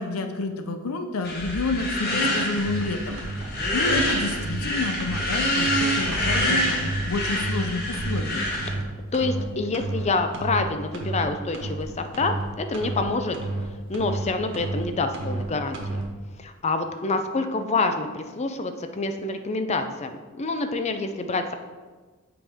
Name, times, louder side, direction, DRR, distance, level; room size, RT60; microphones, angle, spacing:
voice 1, 0.0-3.2 3.7-8.5, left 3 dB, 85° left, 7 dB, 0.6 m, -29 dB
sound 1, 1.2-8.7, left 1 dB, 45° left, 1.3 m, -26 dB
sound 2, 2.6-2.8 3.2-3.4 3.8-4.0 4.3-4.6 5.0-5.2 5.6-5.8 6.1-6.4 6.7-7.0 7.3-7.6 7.9-8.2 8.5-8.8 9.1-9.4 9.7-10.0 10.3-10.6 10.9-11.2 11.5-11.8 12.1-12.4 12.7-13.0 13.3-13.6 13.9-14.2 14.5-14.8 15.1-15.4 15.7-16.0, right 2 dB, 65° right, 1.3 m, -31 dB
voice 2, 9.1-13.4 13.9-16.0 16.4-21.5, left 3 dB, 30° left, 7 dB, 0.5 m, -27 dB
7.8 x 5.0 x 3.6 m, 1.4 s
head